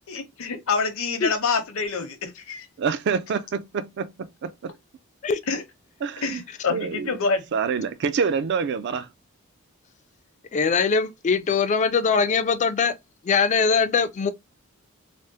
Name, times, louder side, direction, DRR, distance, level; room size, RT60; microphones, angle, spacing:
voice 1, 0.1-2.7 5.5-5.6 6.2-7.5, left 4 dB, 70° left, 0.7 m, -27 dB
voice 2, 2.8-4.7 6.0-6.4 6.7-7.1 7.5-9.1, right 5 dB, 55° right, 0.4 m, -27 dB
voice 3, 10.5-12.9 13.3-14.3, left 5 dB, 35° left, 0.3 m, -21 dB
3.4 x 2.0 x 2.7 m
head